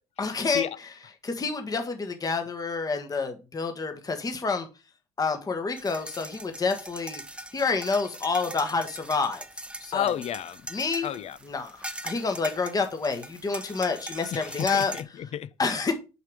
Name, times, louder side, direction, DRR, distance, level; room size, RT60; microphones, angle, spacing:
voice 1, 0.2-0.7 1.2-4.7 5.2-7.2 7.5-9.4 9.8-10.1 10.7-11.1 11.4-14.9 15.6-16.0, left 4 dB, 25° left, 1.3 m, -28 dB
sound 1, 5.8-15.0, right 1 dB, 5° right, 0.9 m, -41 dB
voice 2, 9.9-10.7 11.0-11.4 14.3-15.5, left 10 dB, 45° left, 0.6 m, -31 dB
5.9 x 5.6 x 4.8 m
hypercardioid pair, 60°, 15 cm